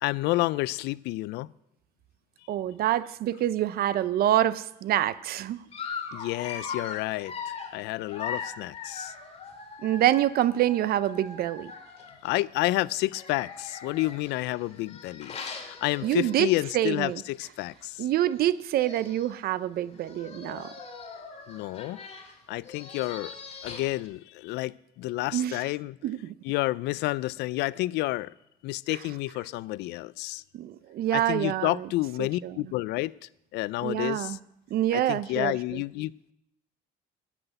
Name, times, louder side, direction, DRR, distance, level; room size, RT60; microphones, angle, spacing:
voice 1, 0.0-1.5 6.1-9.1 12.2-15.4 15.6-18.1 21.5-22.0 22.5-23.3 23.6-26.0 26.4-28.3 28.6-30.4 31.1-33.1 33.5-34.4 34.9-36.3, left 18 dB, 85° left, 0.4 m, -30 dB
voice 2, 2.5-5.6 9.8-11.7 16.0-16.5 16.7-17.2 18.0-20.7 25.3-25.6 26.0-26.3 30.5-31.9 32.2-32.6 33.8-34.4 34.7-35.8, right 13 dB, 65° right, 0.6 m, -26 dB
Dog, 5.7-12.3 13.1-16.7 17.1-17.3 17.5-17.6 18.5-18.6 18.8-19.3 20.0-24.1, left 5 dB, 40° left, 2.2 m, -40 dB
13.5 x 6.0 x 9.1 m
cardioid pair, 110°, 17 cm